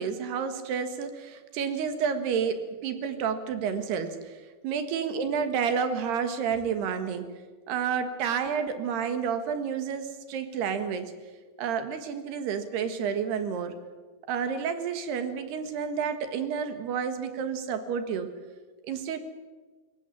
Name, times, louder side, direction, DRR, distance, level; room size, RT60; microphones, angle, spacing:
voice 1, 0.0-4.4 4.6-7.3 7.7-11.1 11.6-13.8 14.3-18.3 18.8-19.2, right 7 dB, 70° right, 9 dB, 3.5 m, -30 dB
22.5 x 18.0 x 9.8 m, 1.3 s
omnidirectional pair, 5.0 m